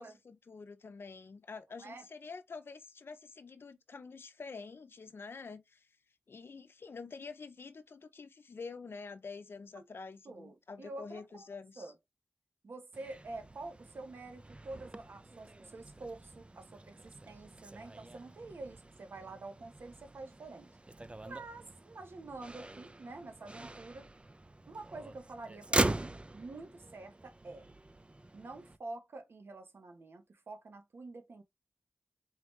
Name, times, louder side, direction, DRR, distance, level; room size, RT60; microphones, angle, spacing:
voice 1, 0.0-5.9 6.3-11.9, left 4 dB, 80° left, 0.6 m, -47 dB
voice 2, 10.2-11.4 11.8-11.9 12.6-20.8 21.2-24.1 24.7-27.7 28.3-31.4, right 2 dB, 85° right, 0.9 m, -47 dB
Motor vehicle (road), 12.9-28.8, right 2 dB, 30° right, 0.4 m, -41 dB
3.9 x 3.2 x 3.1 m
cardioid pair, 45°, 4 cm